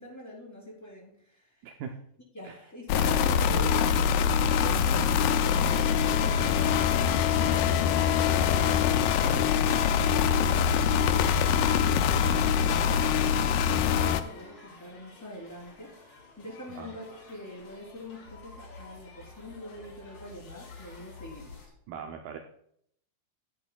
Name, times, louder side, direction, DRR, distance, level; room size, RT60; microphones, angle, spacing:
voice 1, 0.0-1.7 2.3-21.7, left 1 dB, 5° left, -5 dB, 2.8 m, -44 dB
voice 2, 1.6-1.9 2.4-2.6 3.0-3.1 16.7-16.9 21.9-22.4, right 7 dB, 75° right, 4 dB, 2.1 m, -40 dB
sound 1, 2.9-14.2, left 7 dB, 85° left, 1.9 m, -24 dB
sound 2, 5.4-21.7, left 4 dB, 55° left, 3.0 m, -48 dB
12.5 x 8.4 x 2.3 m, 0.70 s
omnidirectional pair, 4.2 m